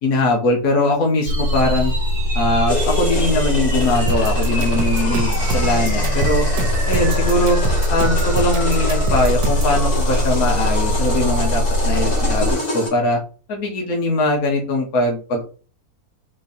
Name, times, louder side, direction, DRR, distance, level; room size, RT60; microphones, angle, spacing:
voice 1, 0.0-1.9 2.3-6.4 6.9-7.6 7.9-13.2 13.5-15.4, left 2 dB, 70° left, 0 dB, 1.5 m, -21 dB
sound 1, 1.2-12.5, equal, 30° right, 1.5 m, -21 dB
sound 2, 2.7-12.9, left 2 dB, 85° left, 2.2 m, -28 dB
sound 3, 4.1-9.8, right 2 dB, 80° right, 1.2 m, -26 dB
4.0 x 3.0 x 2.6 m, 0.36 s
omnidirectional pair, 1.6 m